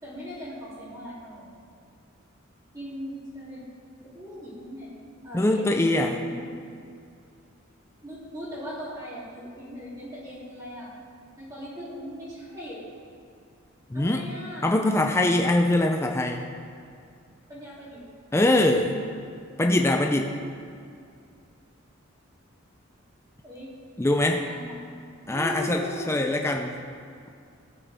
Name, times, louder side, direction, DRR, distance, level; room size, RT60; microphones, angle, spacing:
voice 1, 0.0-1.6 2.7-3.6 4.0-4.9 5.2-6.5 8.0-10.9 11.4-12.8 13.9-14.8 17.5-18.0 23.4-23.7 24.4-24.9 25.3-26.2, equal, 15° right, -9 dB, 3.2 m, -39 dB
voice 2, 5.3-6.2 13.9-14.3 14.6-16.4 18.3-19.0 19.6-20.3 24.0-24.4 25.3-26.8, left 1 dB, 15° left, 2 dB, 0.5 m, -23 dB
15.0 x 9.6 x 3.6 m, 2.4 s
head